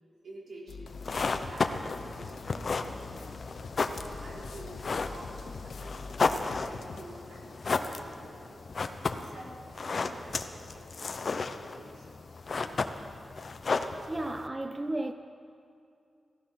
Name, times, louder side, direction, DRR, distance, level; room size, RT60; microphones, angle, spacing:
voice 1, 0.2-3.4 4.0-6.3 6.6-8.7 9.1-12.2, right 1 dB, 75° right, 3.8 m, -49 dB
sound 1, 0.7-7.0, left 4 dB, 90° left, 0.8 m, -44 dB
sound 2, 0.9-14.5, left 4 dB, 50° left, 0.8 m, -34 dB
voice 2, 14.1-15.1, right 1 dB, 20° right, 0.5 m, -33 dB
15.5 x 14.5 x 6.2 m
wide cardioid pair, 115°, 0 cm